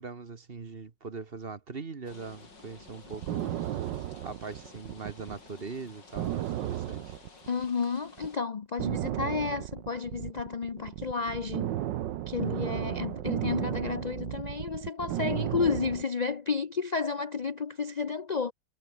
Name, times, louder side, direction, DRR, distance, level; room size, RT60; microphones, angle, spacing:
voice 1, 0.0-3.9 4.2-7.2, right 4 dB, 35° right, 1.4 m, -41 dB
sound 1, 2.1-8.4, left 3 dB, 85° left, 5.0 m, -53 dB
sound 2, 2.9-5.4 5.7-5.8 6.2-7.8 8.2-8.3 8.8-16.0, right 12 dB, 85° right, 1.5 m, -34 dB
voice 2, 7.5-11.7 12.3-18.5, left 5 dB, 65° left, 0.4 m, -31 dB
omnidirectional pair, 1.9 m